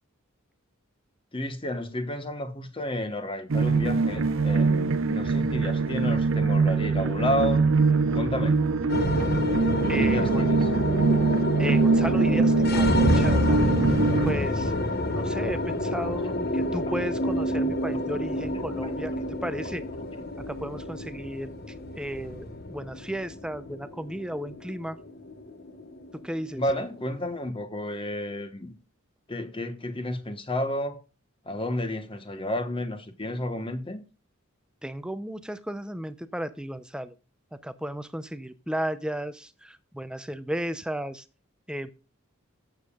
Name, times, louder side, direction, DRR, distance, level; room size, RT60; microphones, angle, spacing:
voice 1, 1.3-8.6 9.9-10.7 26.6-28.7 29.3-31.0 31.5-34.0, left 1 dB, 25° left, 1.1 m, -31 dB
sound 1, 3.5-14.3, right 4 dB, 70° right, 0.7 m, -23 dB
sound 2, 8.9-27.3, left 1 dB, 50° left, 1.1 m, -29 dB
voice 2, 9.9-10.4 11.6-13.9 14.2-14.7 15.1-19.1 19.4-19.8 20.4-21.5 22.0-25.0 26.1-26.6 34.8-37.1 37.5-41.2 41.7-41.9, equal, 5° right, 0.5 m, -34 dB
14.0 x 7.2 x 2.3 m
head